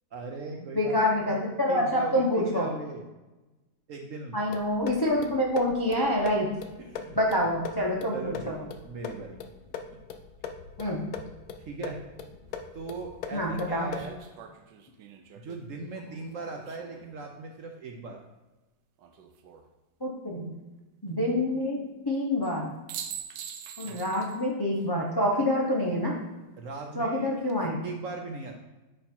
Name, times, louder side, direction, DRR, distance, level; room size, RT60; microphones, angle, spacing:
voice 1, 0.1-1.4 1.7-3.1 3.9-4.4 6.8-7.2 8.1-9.4 11.6-12.0 12.7-14.2 15.3-18.2 23.8-24.0 26.6-27.3 27.8-28.5, right 3 dB, 65° right, 2 dB, 0.8 m, -39 dB
voice 2, 0.7-2.7 4.3-6.5 7.2-8.5 10.8-11.0 13.3-13.9 20.0-20.5 21.0-22.7 23.8-26.2 27.0-27.8, left 1 dB, 30° left, -2 dB, 0.4 m, -27 dB
sound 1, 4.5-14.2, left 6 dB, 65° left, 1.0 m, -41 dB
sound 2, 12.5-12.6 13.9-17.2 19.0-19.7 22.4-22.6 22.9-24.4 24.8-24.9 27.2-27.7, right 8 dB, 90° right, 1.3 m, -44 dB
9.6 x 3.2 x 4.3 m, 1.1 s
omnidirectional pair, 1.9 m